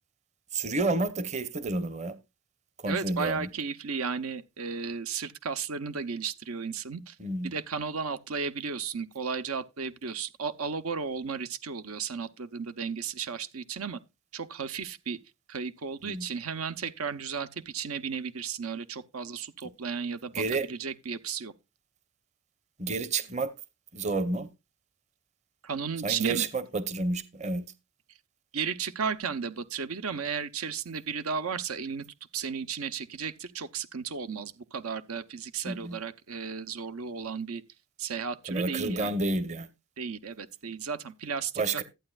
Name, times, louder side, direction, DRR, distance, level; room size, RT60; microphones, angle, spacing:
voice 1, 0.5-2.1 2.8-3.5 7.2-7.5 16.0-16.3 20.3-20.7 22.8-23.5 23.9-24.5 26.0-27.7 35.6-36.0 38.5-39.7 41.6-41.8, right 3 dB, 30° right, 0.9 m, -30 dB
voice 2, 2.9-7.2 7.4-14.0 14.3-15.2 15.5-21.5 25.6-26.5 28.5-32.0 32.3-37.6 38.0-39.1 40.0-41.8, right 6 dB, 75° right, 0.8 m, -34 dB
14.0 x 8.9 x 2.4 m
head